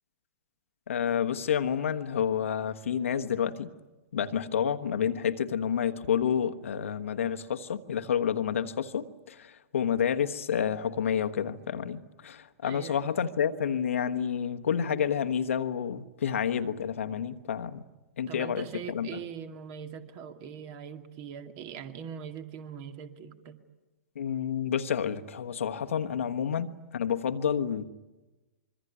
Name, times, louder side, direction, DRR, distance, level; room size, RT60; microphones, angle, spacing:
voice 1, 0.9-3.7 4.1-17.8 18.2-19.2 24.1-27.8, left 8 dB, 60° left, 1.3 m, -29 dB
voice 2, 12.6-13.4 18.3-23.6, right 7 dB, 40° right, 2.3 m, -42 dB
25.5 x 24.0 x 9.6 m
figure-of-eight pair, 105°, 8 cm